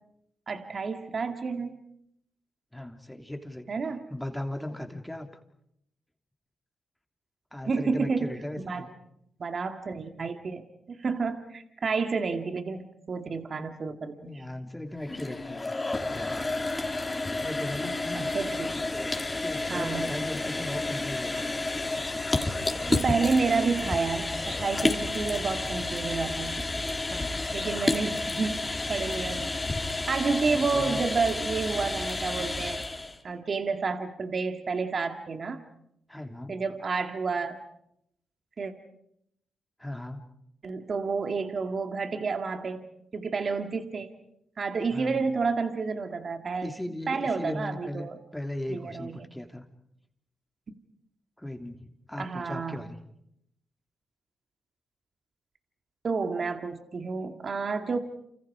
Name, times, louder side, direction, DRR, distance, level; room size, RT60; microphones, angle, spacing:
voice 1, 0.5-1.7 3.7-4.0 7.7-8.3 8.6-8.8 9.4-10.6 10.9-14.4 17.8-18.5 19.7-20.1 22.9-26.7 27.5-28.6 28.9-29.6 30.1-32.8 33.2-35.6 36.5-37.6 38.6-38.7 40.6-42.8 43.1-44.1 44.6-46.7 47.1-48.2 48.7-49.3 52.2-52.8 56.0-58.0, right 4 dB, 55° right, 7 dB, 2.1 m, -30 dB
voice 2, 2.7-3.7 4.1-5.3 7.5-8.9 14.1-15.7 16.1-16.5 17.3-18.3 18.9-21.6 27.0-27.3 30.5-31.0 36.1-36.6 39.8-40.2 44.9-45.3 46.6-49.6 51.4-53.0, left 1 dB, 10° left, 5 dB, 3.1 m, -37 dB
sound 1, 14.9-33.2, left 2 dB, 25° left, 3.4 m, -31 dB
29.0 x 26.5 x 4.9 m, 0.77 s
supercardioid pair, 50°, 0 cm